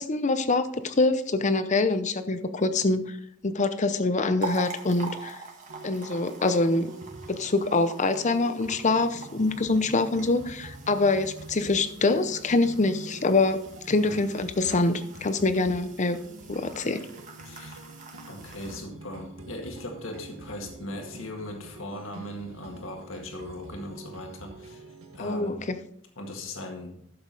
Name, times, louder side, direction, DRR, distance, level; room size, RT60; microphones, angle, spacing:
voice 1, 0.0-3.2 3.4-5.4 5.8-6.9 7.3-13.6 13.9-16.2 16.5-17.1 25.2-25.8, left 3 dB, 35° left, 11 dB, 0.7 m, -25 dB
sound 1, 4.4-18.8, right 4 dB, 40° right, 1.7 m, -44 dB
sound 2, 5.7-25.2, right 2 dB, 80° right, 1.8 m, -46 dB
voice 2, 13.9-14.2 17.4-17.9 18.3-24.8 25.1-25.6 26.2-27.0, left 1 dB, 70° left, 3 dB, 1.9 m, -39 dB
12.0 x 7.0 x 4.1 m, 0.68 s
head